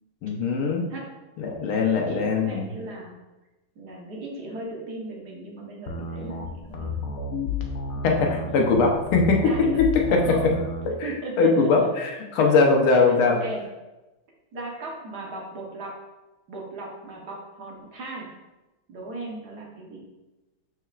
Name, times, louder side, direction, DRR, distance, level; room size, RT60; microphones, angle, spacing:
voice 1, 0.2-0.9 1.4-2.7 8.0-9.4 10.1-10.2 10.9-13.4, left 4 dB, 80° left, 1 dB, 1.8 m, -21 dB
voice 2, 2.1-3.1 3.7-7.1 7.9-8.7 9.3-9.8 10.1-10.5 11.0-11.9 13.2-13.6 14.5-16.0 16.5-18.3 18.9-20.1, right 2 dB, 55° right, -2 dB, 1.5 m, -37 dB
sound 1, 5.9-10.9, left 3 dB, 65° left, 0.8 m, -31 dB
6.8 x 6.2 x 2.4 m, 1.1 s
omnidirectional pair, 2.3 m